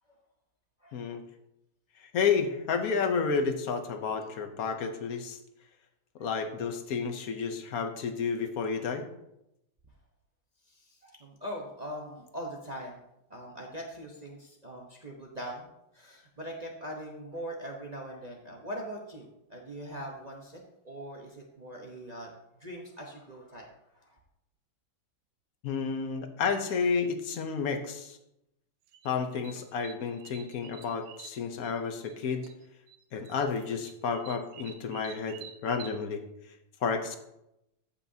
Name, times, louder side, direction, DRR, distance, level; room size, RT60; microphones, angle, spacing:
voice 1, 0.9-1.2 2.0-5.4 6.2-9.1 25.6-28.2 29.0-32.5 33.1-36.2 36.8-37.2, left 5 dB, 60° left, 7 dB, 1.0 m, -31 dB
voice 2, 10.7-13.0 13.3-15.7 15.9-20.6 20.8-22.3 22.6-23.7 23.9-24.2, equal, 35° right, -1 dB, 0.7 m, -41 dB
sound 1, 28.9-32.1 32.4-33.0 33.2-36.0, right 9 dB, 85° right, 1.4 m, -49 dB
14.0 x 5.8 x 2.7 m, 0.86 s
omnidirectional pair, 2.1 m